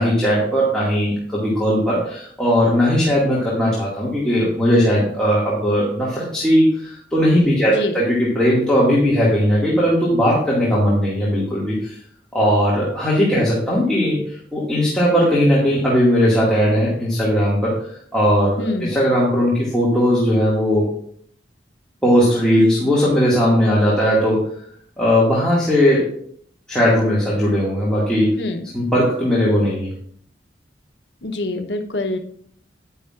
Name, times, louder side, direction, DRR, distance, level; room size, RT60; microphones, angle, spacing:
voice 1, 0.0-12.0 12.3-20.9 22.0-24.5 25.0-26.2 26.7-28.4 28.7-29.9, equal, 5° left, -8 dB, 2.0 m, -18 dB
voice 2, 18.6-18.9 28.4-28.7 31.2-32.2, left 2 dB, 80° left, 6 dB, 0.9 m, -25 dB
10.0 x 9.6 x 2.5 m, 0.63 s
head